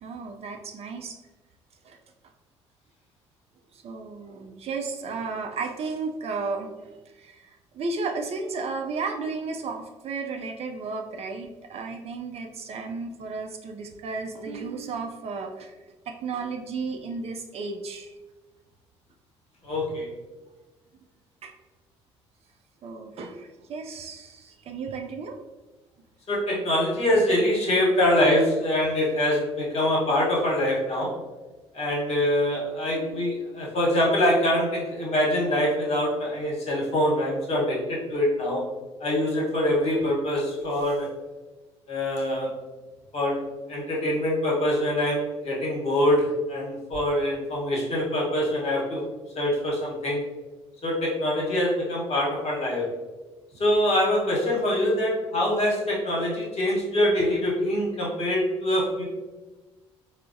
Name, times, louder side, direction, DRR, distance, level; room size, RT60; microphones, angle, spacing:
voice 1, 0.0-1.1 1.8-2.0 3.7-15.7 16.1-18.1 21.4-21.5 22.8-25.4 32.9-33.2, right 4 dB, 45° right, 4 dB, 0.4 m, -34 dB
voice 2, 19.6-20.1 26.3-31.1 31.7-38.6 39.0-41.1 41.9-42.5 43.1-43.4 43.7-49.0 49.3-50.2 50.8-52.8 53.6-59.0, left 1 dB, 45° left, -3 dB, 1.1 m, -24 dB
4.4 x 2.0 x 2.6 m, 1.2 s
figure-of-eight pair, 50°, 15 cm